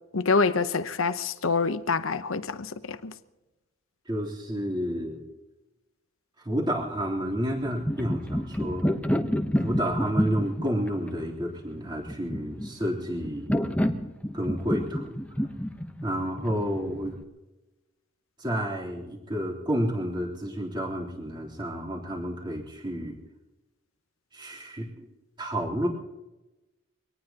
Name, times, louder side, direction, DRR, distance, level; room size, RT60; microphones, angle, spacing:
voice 1, 0.1-3.1, left 4 dB, 85° left, 0.9 m, -26 dB
voice 2, 4.1-5.2 6.4-8.9 9.5-13.5 14.3-15.2 16.0-17.2 18.4-23.2 24.3-25.1 25.4-25.9, equal, 20° right, 3.5 m, -30 dB
sound 1, 7.5-17.2, equal, 5° left, 1.0 m, -29 dB
24.5 x 18.5 x 2.9 m
head